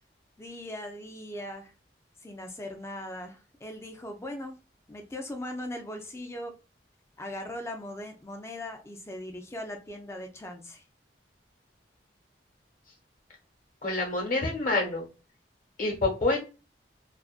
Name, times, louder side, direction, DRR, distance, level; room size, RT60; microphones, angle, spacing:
voice 1, 0.4-1.7 2.2-4.5 4.9-6.5 7.2-10.8, left 1 dB, 15° left, 4 dB, 0.4 m, -39 dB
voice 2, 13.8-15.1 15.8-16.4, left 2 dB, 50° left, 1 dB, 1.0 m, -27 dB
2.4 x 2.2 x 2.4 m, 0.31 s
head